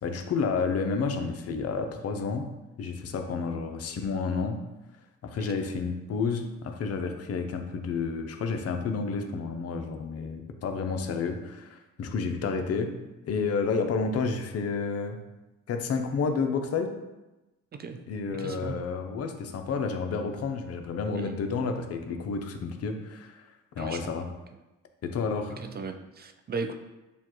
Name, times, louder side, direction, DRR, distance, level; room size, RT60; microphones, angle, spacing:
voice 1, 0.0-2.5 2.8-4.6 5.2-12.9 13.2-15.2 15.7-16.9 18.1-23.4 23.8-24.2 25.0-25.6, left 5 dB, 55° left, 5 dB, 0.6 m, -30 dB
voice 2, 17.7-18.0 18.3-18.9 21.2-21.4 23.8-24.3 25.6-26.7, right 4 dB, 35° right, 7 dB, 0.4 m, -37 dB
7.0 x 2.3 x 3.0 m, 1.0 s
cardioid pair, 90°, 30 cm